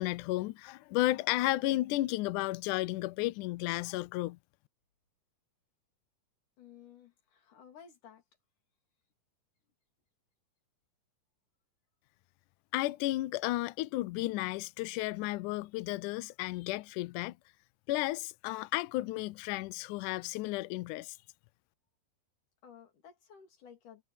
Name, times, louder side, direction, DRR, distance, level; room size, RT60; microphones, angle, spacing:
voice 1, 0.0-4.4 12.7-17.4 17.9-21.2, left 18 dB, 80° left, 1.9 m, -33 dB
voice 2, 6.6-8.2 22.6-24.0, left 8 dB, 65° left, 4.3 m, -55 dB
omnidirectional pair, 4.0 m